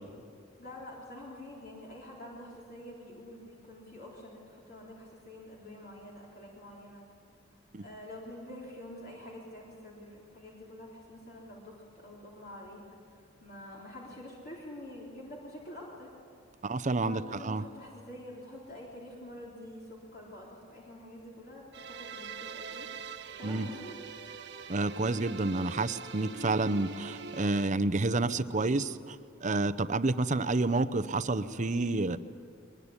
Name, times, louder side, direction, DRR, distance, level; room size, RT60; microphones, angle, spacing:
voice 1, 0.6-7.1 7.8-16.1 17.0-22.9 23.4-24.0, left 1 dB, 50° left, -4 dB, 3.9 m, -47 dB
voice 2, 16.6-17.6 23.4-23.7 24.7-32.2, right 2 dB, 40° right, 13 dB, 0.7 m, -29 dB
sound 1, 21.7-27.7, right 5 dB, 65° right, 1.4 m, -43 dB
22.5 x 21.0 x 9.8 m, 2.4 s
head